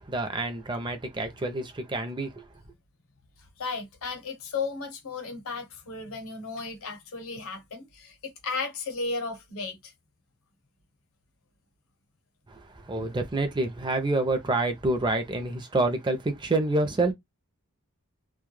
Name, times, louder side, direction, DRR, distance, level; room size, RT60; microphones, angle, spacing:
voice 1, 0.1-2.5 12.5-17.1, right 2 dB, 20° right, 0.5 m, -28 dB
voice 2, 3.6-9.9, left 4 dB, 65° left, 0.8 m, -34 dB
2.2 x 2.1 x 3.1 m
head